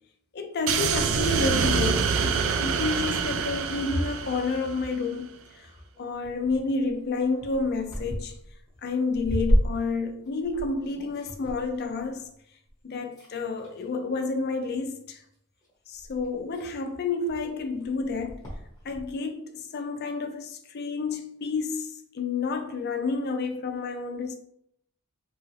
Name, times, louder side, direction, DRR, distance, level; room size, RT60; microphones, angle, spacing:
voice 1, 0.3-5.7 6.0-8.3 8.8-12.2 12.8-15.2 15.9-18.4 18.8-24.4, left 4 dB, 45° left, 0.4 m, -30 dB
sound 1, 0.7-5.0, right 6 dB, 60° right, 0.3 m, -26 dB
sound 2, 5.9-12.8 13.1-13.8 14.7-15.1 15.6-15.7 15.9-19.1, equal, 15° left, 1.1 m, -32 dB
3.0 x 2.4 x 3.1 m
head